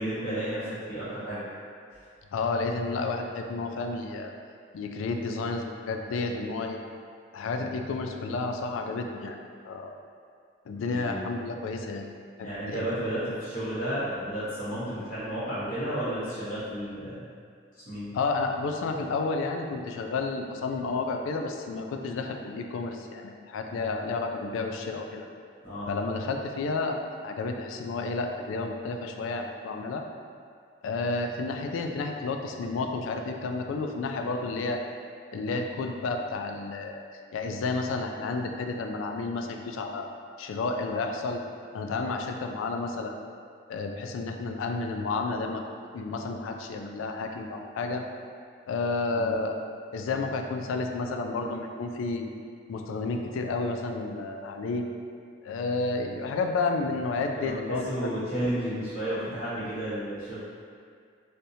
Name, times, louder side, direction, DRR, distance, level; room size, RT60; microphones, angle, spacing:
voice 1, 0.0-1.4 1.9-2.0 10.7-11.2 12.4-17.2 17.8-18.1 25.6-25.9 49.1-49.3 57.3-60.4, right 1 dB, 45° left, -14 dB, 1.1 m, -32 dB
voice 2, 2.3-4.3 4.7-6.9 7.3-9.4 9.7-10.0 10.7-12.1 12.7-12.9 18.1-25.3 25.9-30.1 30.8-34.8 35.3-37.0 37.3-40.1 40.4-41.4 41.7-43.2 43.7-45.6 45.9-48.0 48.7-49.6 49.9-52.3 52.7-54.9 55.4-58.2, left 3 dB, 90° left, 4 dB, 0.3 m, -31 dB
3.4 x 2.7 x 2.7 m, 2.2 s
head